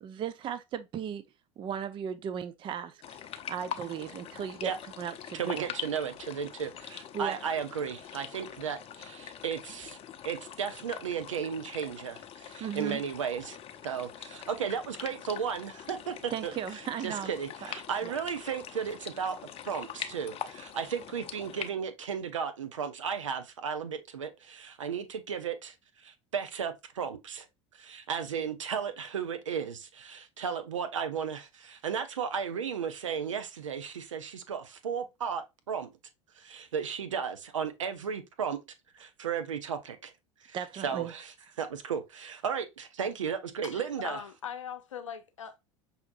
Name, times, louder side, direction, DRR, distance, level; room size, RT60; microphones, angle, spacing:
voice 1, 0.0-1.2 1.6-3.2 3.5-4.7 5.0-5.7 7.1-7.4 12.6-13.0 16.3-17.3 17.6-17.7 18.0-18.1 40.5-41.1, right 8 dB, 30° right, 0.4 m, -36 dB
sound 1, 3.0-21.7, left 9 dB, 35° left, 0.6 m, -44 dB
voice 2, 5.3-10.0 10.2-13.6 13.8-16.5 17.0-19.3 19.6-27.5 27.8-35.9 36.4-38.6 39.0-40.1 40.4-44.2, right 7 dB, 85° right, 0.6 m, -35 dB
voice 3, 43.6-45.6, left 8 dB, 85° left, 0.6 m, -40 dB
5.6 x 2.8 x 2.5 m
hypercardioid pair, 80°, 16 cm